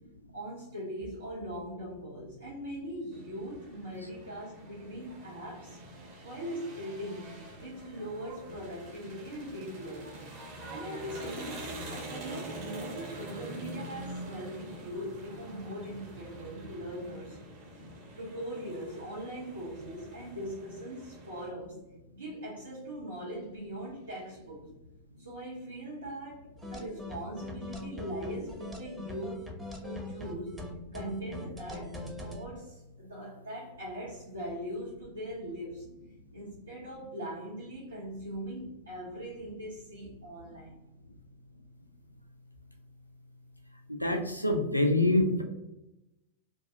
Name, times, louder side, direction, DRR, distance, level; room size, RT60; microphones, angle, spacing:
voice 1, 0.3-5.8 6.2-10.2 10.7-17.4 18.2-21.8 22.1-24.7 25.2-29.5 29.8-30.6 30.9-35.9 36.3-40.8, equal, 80° right, -6 dB, 0.6 m, -41 dB
sound 1, 3.1-21.5, right 1 dB, 45° right, 0.7 m, -45 dB
sound 2, 26.6-32.4, left 2 dB, 10° right, 0.5 m, -41 dB
voice 2, 43.9-45.4, left 1 dB, 90° left, 3 dB, 0.3 m, -26 dB
2.3 x 2.3 x 2.6 m, 0.91 s
figure-of-eight pair, 90°, 0 cm